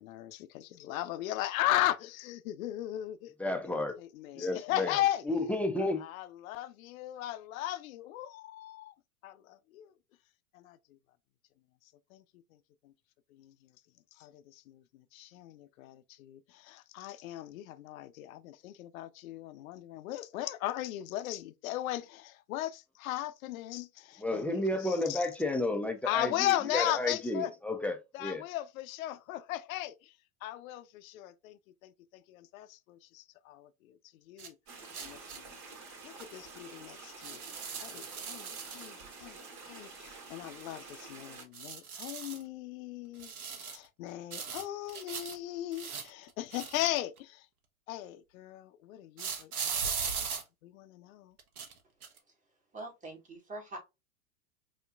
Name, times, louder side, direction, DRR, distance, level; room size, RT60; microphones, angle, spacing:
voice 1, 0.0-5.2 5.8-8.9 9.2-9.9 10.5-10.8 12.1-12.2 12.8-12.9 13.3-13.5 14.1-25.3 26.0-27.5 28.1-30.1 30.4-34.0 34.3-34.6 35.0-35.6 36.0-37.4 37.8-47.5 47.9-49.5 49.8-51.4, left 14 dB, 70° left, 0.6 m, -37 dB
voice 2, 3.4-4.0 4.4-5.0 5.3-6.0 24.2-28.4, left 2 dB, 5° left, 0.6 m, -32 dB
sound 1, 34.4-34.5 34.9-35.4 36.2-36.3 37.2-39.0 41.3-42.4 43.2-43.9 44.3-45.4 45.7-47.2 49.2-50.4 51.4-51.7 52.0-52.2, right 6 dB, 85° right, 1.0 m, -38 dB
sound 2, 34.7-41.4, right 4 dB, 50° right, 2.3 m, -49 dB
voice 3, 52.7-53.8, right 2 dB, 15° right, 1.9 m, -43 dB
5.3 x 2.9 x 2.4 m
hypercardioid pair, 100°, 43 cm